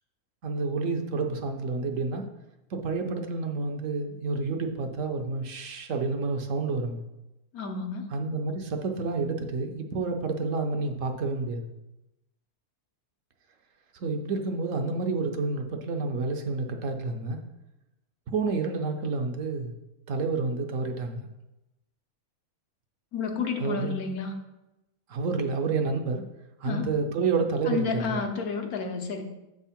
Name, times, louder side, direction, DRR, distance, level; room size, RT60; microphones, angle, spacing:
voice 1, 0.4-2.3 2.7-7.0 8.1-11.7 13.9-17.4 18.3-19.7 20.1-21.3 23.6-24.1 25.1-26.2 26.6-28.2, right 4 dB, 65° right, 4 dB, 1.0 m, -29 dB
voice 2, 7.5-8.1 23.1-24.3 26.6-27.0 27.7-29.2, left 5 dB, 75° left, 4 dB, 1.3 m, -31 dB
7.5 x 3.6 x 5.7 m, 0.95 s
omnidirectional pair, 1.6 m